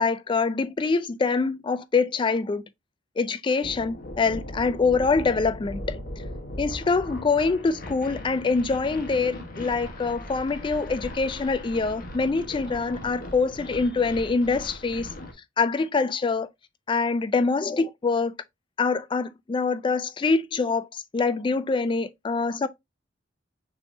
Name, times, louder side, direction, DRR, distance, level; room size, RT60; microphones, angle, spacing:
voice 1, 0.0-2.6 3.2-6.0 6.6-15.1 15.6-16.5 16.9-18.3 18.8-22.7, left 4 dB, 25° left, 0.3 m, -25 dB
sound 1, 3.6-15.3, left 1 dB, 50° left, 1.1 m, -38 dB
5.8 x 3.5 x 2.6 m
head